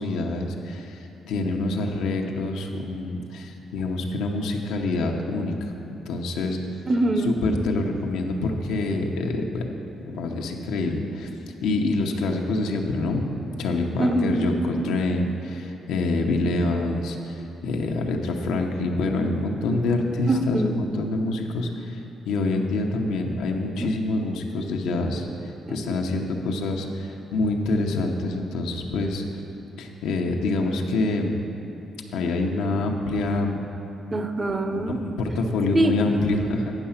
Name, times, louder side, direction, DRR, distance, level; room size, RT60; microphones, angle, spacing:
voice 1, 0.0-6.6 7.3-9.7 10.1-11.3 11.6-13.3 13.6-22.0 22.3-29.2 29.8-31.4 32.1-33.6 34.7-36.7, left 2 dB, 90° left, 2 dB, 0.8 m, -26 dB
voice 2, 6.9-7.3 14.0-14.7 20.3-20.8 23.8-23.9 25.7-26.0 34.1-35.0 35.7-36.0, right 1 dB, 30° right, 7 dB, 0.7 m, -24 dB
10.0 x 5.7 x 5.7 m, 3.0 s
cardioid pair, 90°, 0 cm